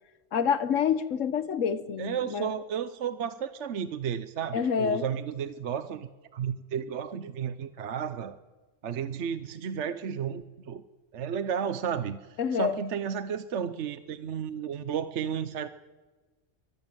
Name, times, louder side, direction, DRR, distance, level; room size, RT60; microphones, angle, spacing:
voice 1, 0.3-2.5 4.5-5.0 12.4-12.7, left 7 dB, 90° left, 14 dB, 1.3 m, -27 dB
voice 2, 2.0-8.4 8.8-10.8 11.1-15.7, right 8 dB, 70° right, 12 dB, 1.1 m, -33 dB
24.0 x 15.0 x 9.1 m, 1.3 s
omnidirectional pair, 1.3 m